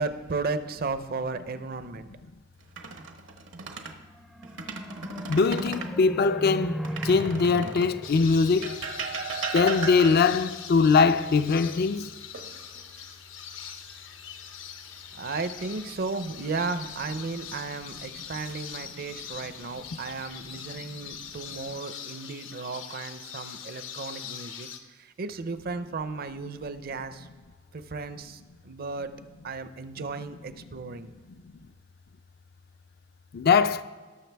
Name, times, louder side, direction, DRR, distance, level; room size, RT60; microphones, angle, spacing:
voice 1, 0.0-2.1 15.2-24.7 25.2-27.3 27.7-28.4 28.6-29.1 29.4-31.1, right 4 dB, 50° right, 0.6 m, -34 dB
sound 1, 2.6-4.0 4.4-6.0 6.8-8.0 8.6-10.4 12.3-13.0 13.4-13.7 16.6-17.2 17.9-18.5, right 4 dB, 75° right, 1.0 m, -36 dB
sound 2, 4.0-9.5, equal, ahead, 0.5 m, -38 dB
voice 2, 5.3-8.8 9.5-12.1 30.9-31.0 33.3-33.8, left 5 dB, 55° left, 0.4 m, -22 dB
sound 3, 8.0-24.8, left 8 dB, 75° left, 0.9 m, -42 dB
18.0 x 6.7 x 3.4 m
head